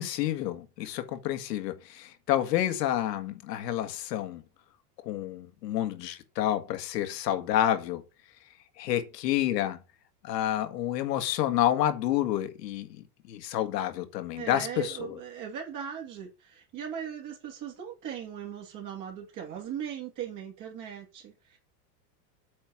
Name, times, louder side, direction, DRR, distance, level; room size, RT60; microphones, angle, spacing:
voice 1, 0.0-4.4 5.0-8.0 8.8-9.8 10.2-15.2, left 12 dB, 80° left, 1.9 m, -29 dB
voice 2, 14.3-21.6, right 8 dB, 40° right, 2.8 m, -39 dB
8.6 x 4.5 x 7.2 m
supercardioid pair, 135°, 49 cm